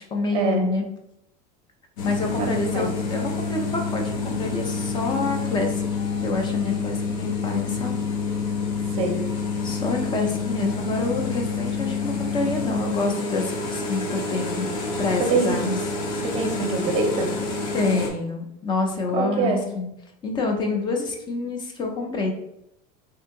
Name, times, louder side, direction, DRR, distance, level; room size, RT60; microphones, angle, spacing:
voice 1, 0.1-0.8 2.0-5.9 6.2-7.9 9.6-14.7 15.0-15.8 17.7-19.9 20.2-22.3, left 3 dB, 25° left, 3 dB, 0.5 m, -27 dB
sound 1, 2.0-18.1, left 4 dB, 85° left, 0.8 m, -28 dB
voice 2, 2.4-2.9 8.9-9.2 15.3-15.8 16.2-17.3 19.1-19.6, right 4 dB, 30° right, 3 dB, 0.6 m, -24 dB
2.7 x 2.7 x 3.6 m, 0.84 s
cardioid pair, 155°, 19 cm